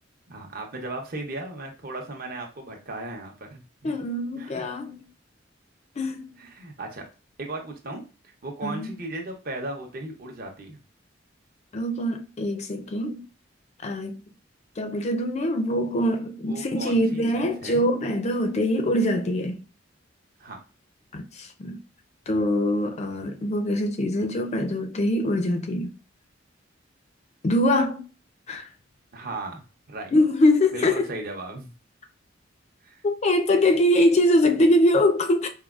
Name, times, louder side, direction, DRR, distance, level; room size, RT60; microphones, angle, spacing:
voice 1, 0.3-3.9 4.4-4.6 6.4-7.1 7.4-8.0 8.4-10.8 16.5-17.9 20.4-20.6 29.1-30.1 30.7-31.7 32.8-33.0, right 2 dB, 50° right, 0.8 m, -36 dB
voice 2, 3.8-5.1 6.0-6.3 8.6-8.9 11.7-13.2 13.8-14.2 14.8-19.6 21.1-21.8 22.3-25.9 27.4-28.0 28.5-28.7 30.1-31.1 33.0-35.5, left 1 dB, 35° left, 0.4 m, -23 dB
4.6 x 2.3 x 2.4 m
head